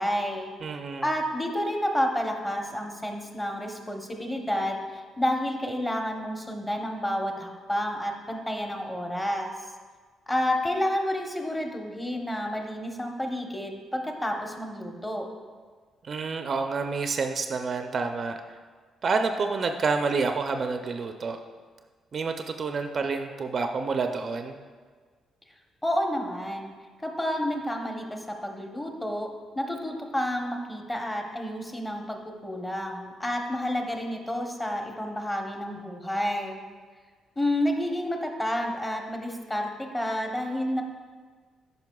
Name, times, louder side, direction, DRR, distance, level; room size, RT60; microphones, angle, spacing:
voice 1, 0.0-0.5 1.0-9.5 10.3-15.3 25.8-26.7 27.0-36.6 37.4-40.8, equal, 15° left, 3 dB, 0.9 m, -30 dB
voice 2, 0.6-1.1 16.0-18.6 19.0-21.4 22.1-24.6, right 4 dB, 45° right, 6 dB, 0.4 m, -28 dB
10.5 x 5.2 x 2.3 m, 1.5 s
cardioid pair, 90°, 0 cm